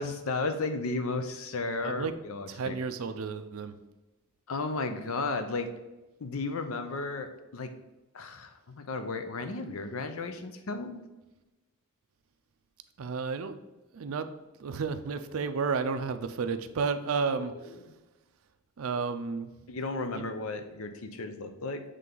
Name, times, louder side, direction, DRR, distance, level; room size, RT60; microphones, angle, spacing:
voice 1, 0.0-2.8 4.5-5.7 6.2-7.7 8.1-11.0 17.2-17.8 19.7-21.8, left 3 dB, 70° left, 8 dB, 0.6 m, -34 dB
voice 2, 2.5-3.8 13.0-13.6 13.9-14.3 14.6-17.5 18.8-19.5 20.2-20.3, right 5 dB, 70° right, 10 dB, 0.4 m, -32 dB
7.5 x 3.3 x 3.8 m, 1.1 s
head